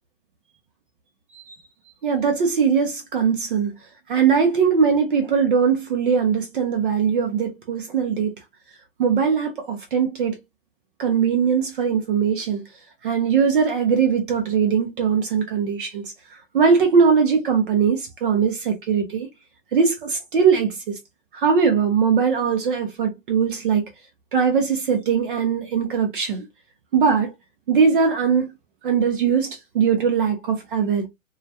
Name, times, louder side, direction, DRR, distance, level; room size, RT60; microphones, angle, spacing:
voice 1, 2.0-3.7 4.1-8.3 9.0-10.4 11.0-12.6 13.0-16.1 16.5-19.3 19.7-21.0 21.3-23.9 24.3-26.4 26.9-27.3 27.7-28.5 28.8-31.1, right 6 dB, 45° right, 0.5 m, -20 dB
2.3 x 2.1 x 2.6 m
hypercardioid pair, 125°, 38 cm